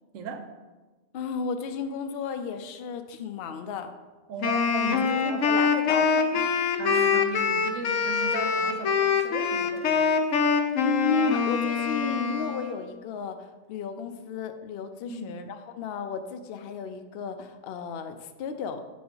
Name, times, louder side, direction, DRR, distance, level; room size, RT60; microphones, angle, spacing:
voice 1, 0.1-0.5 4.3-5.4 6.8-10.2 15.1-15.4, right 4 dB, 85° right, 7 dB, 1.1 m, -36 dB
voice 2, 1.1-3.9 5.1-6.6 10.8-18.8, left 5 dB, 60° left, 7 dB, 0.7 m, -33 dB
Wind instrument woodwind instrument, 4.4-12.8, left 5 dB, 85° left, 1.0 m, -24 dB
7.9 x 5.1 x 3.8 m, 1.2 s
omnidirectional pair, 1.3 m